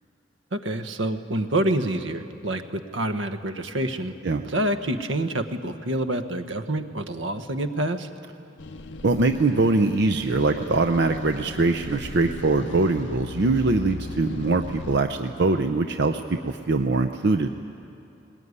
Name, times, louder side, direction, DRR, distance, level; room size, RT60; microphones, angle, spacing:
voice 1, 0.5-4.1 4.4-8.1, right 1 dB, 80° right, 8 dB, 1.2 m, -27 dB
sound 1, 8.6-15.0, left 2 dB, 70° left, 0.7 m, -38 dB
voice 2, 9.0-17.5, right 3 dB, 60° right, 6 dB, 0.7 m, -22 dB
20.5 x 19.5 x 9.7 m, 2.7 s
head